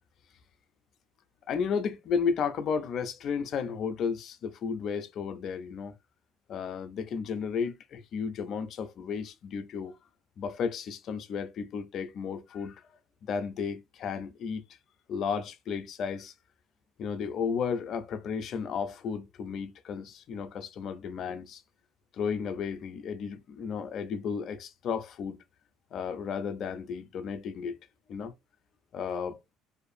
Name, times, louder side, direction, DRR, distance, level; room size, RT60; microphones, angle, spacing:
voice 1, 1.5-5.9 6.5-9.9 10.4-12.8 13.2-14.6 15.1-16.3 17.0-21.6 22.1-25.4 25.9-27.8 28.1-28.3 28.9-29.4, left 6 dB, 55° left, 0.4 m, -33 dB
2.5 x 2.4 x 2.5 m
supercardioid pair, 100°, 0 cm